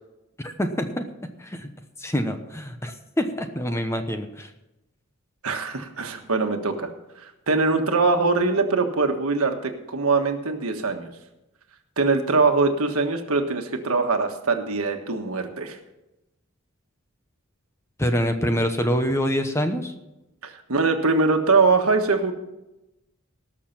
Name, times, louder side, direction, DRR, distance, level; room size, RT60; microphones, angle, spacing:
voice 1, 0.4-1.1 1.4-1.7 2.0-4.5 18.0-19.9, equal, 10° left, 7 dB, 0.9 m, -25 dB
voice 2, 5.4-6.9 7.2-11.1 12.0-15.8 20.4-22.3, right 3 dB, 85° right, 5 dB, 1.5 m, -22 dB
18.0 x 6.7 x 5.8 m, 0.95 s
head